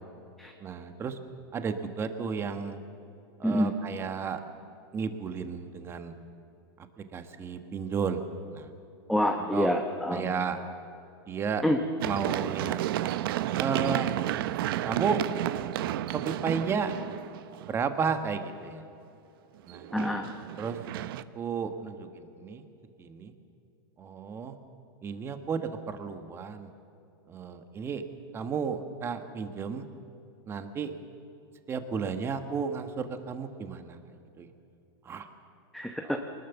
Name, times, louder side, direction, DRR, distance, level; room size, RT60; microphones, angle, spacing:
voice 1, 0.6-1.2 1.5-2.8 3.4-4.4 4.9-6.1 7.1-8.2 8.5-8.7 9.5-9.7 10.1-10.6 11.3-11.6 12.0-12.8 13.5-14.2 14.8-15.2 16.1-16.9 17.7-18.8 19.7-19.9 20.6-20.8 21.3-22.6 23.0-23.3 24.0-24.6 25.0-26.7 27.3-28.0 28.3-29.8 30.5-30.9 31.7-34.0 34.4-34.5 35.0-35.3 36.0-36.2, right 6 dB, 20° right, 8 dB, 1.4 m, -33 dB
voice 2, 3.4-3.7 9.1-10.3 11.6-11.8 19.9-20.3 35.7-36.2, equal, ahead, 3 dB, 0.9 m, -27 dB
Run, 12.0-17.8 19.7-21.2, right 13 dB, 60° right, 0.8 m, -32 dB
24.5 x 20.0 x 7.1 m, 2.7 s
supercardioid pair, 155°, 13 cm